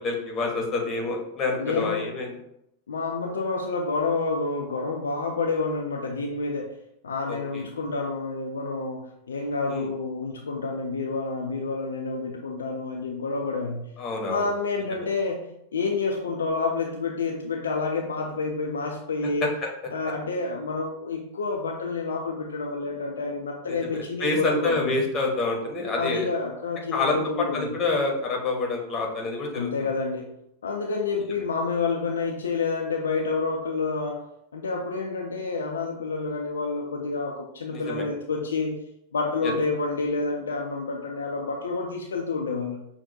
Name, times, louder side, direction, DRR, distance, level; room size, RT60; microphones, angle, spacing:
voice 1, 0.0-2.3 7.3-7.6 9.7-9.9 14.0-14.4 19.4-19.7 23.7-26.3 26.9-29.9 37.7-38.0 39.4-39.5, left 3 dB, 25° left, 0 dB, 1.1 m, -27 dB
voice 2, 1.6-2.1 2.9-6.7 7.0-13.9 14.2-19.5 19.9-24.9 26.0-27.7 29.5-30.3 30.6-38.8 39.1-42.8, left 4 dB, 70° left, 1 dB, 0.4 m, -29 dB
5.7 x 2.5 x 2.7 m, 0.77 s
figure-of-eight pair, 90°, 0 cm